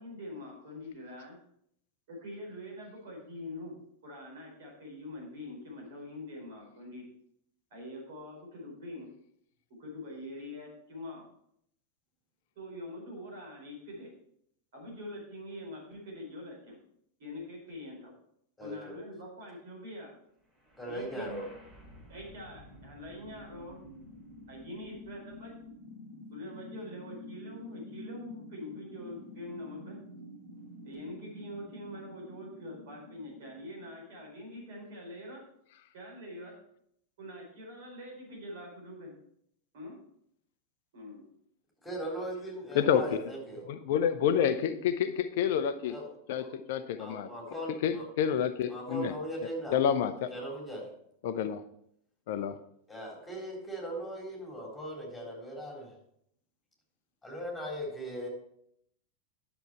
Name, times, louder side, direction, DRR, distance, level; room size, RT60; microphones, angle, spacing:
voice 1, 0.0-1.4 2.1-3.7 4.0-7.0 7.7-9.1 9.8-11.2 12.6-14.1 14.7-16.8 17.2-18.1 18.6-20.1 20.8-21.4 22.1-23.8 24.5-25.5 26.3-30.0 30.8-35.4 35.9-36.5 37.2-39.1 39.7-40.0 40.9-41.2, left 1 dB, 55° right, -1 dB, 4.4 m, -44 dB
voice 2, 18.6-19.0 20.8-21.5 41.8-43.7 45.9-46.0 46.4-46.5 47.0-48.0 48.7-49.7 50.3-50.9 52.9-55.9 57.2-58.3, equal, 5° left, -2 dB, 3.8 m, -39 dB
sound 1, 20.6-34.6, left 2 dB, 20° right, 2.7 m, -49 dB
voice 3, 42.7-43.2 43.7-45.9 46.3-47.3 47.8-49.1 49.7-50.3 51.2-51.6 52.3-52.6, left 8 dB, 50° left, 11 dB, 0.5 m, -28 dB
10.5 x 6.9 x 4.5 m, 0.73 s
figure-of-eight pair, 90°, 0 cm